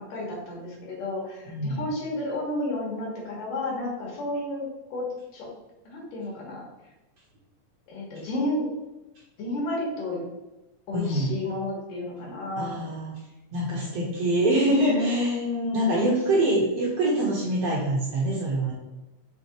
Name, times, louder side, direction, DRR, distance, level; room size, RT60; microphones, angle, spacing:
voice 1, 0.1-4.7 4.9-5.1 5.3-5.5 5.8-6.6 7.9-8.7 9.4-10.2 10.9-12.8 14.7-16.1, left 1 dB, 75° left, -3 dB, 3.3 m, -31 dB
voice 2, 1.5-1.8 10.9-11.4 12.5-13.2 13.5-15.4 15.7-18.7, right 1 dB, 65° right, -3 dB, 1.7 m, -25 dB
6.4 x 3.6 x 4.4 m, 1.0 s
omnidirectional pair, 3.9 m